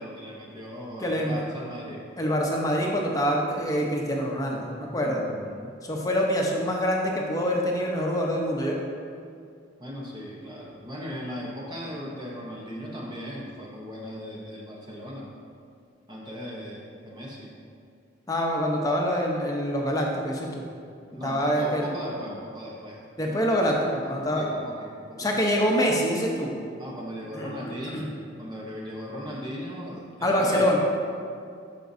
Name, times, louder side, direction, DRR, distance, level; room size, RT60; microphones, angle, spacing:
voice 1, 0.0-2.0 4.6-5.7 9.8-15.3 16.1-17.5 21.1-23.0 23.3-23.4 24.0-25.5 26.8-30.7, equal, 20° right, -3 dB, 0.8 m, -38 dB
voice 2, 1.0-1.4 2.2-5.2 5.8-8.8 18.3-20.6 21.2-21.9 23.2-24.5 25.2-26.5 27.3-27.5 27.9-28.1 30.2-30.8, equal, 20° left, -1 dB, 0.8 m, -25 dB
11.5 x 5.2 x 2.7 m, 2.3 s
head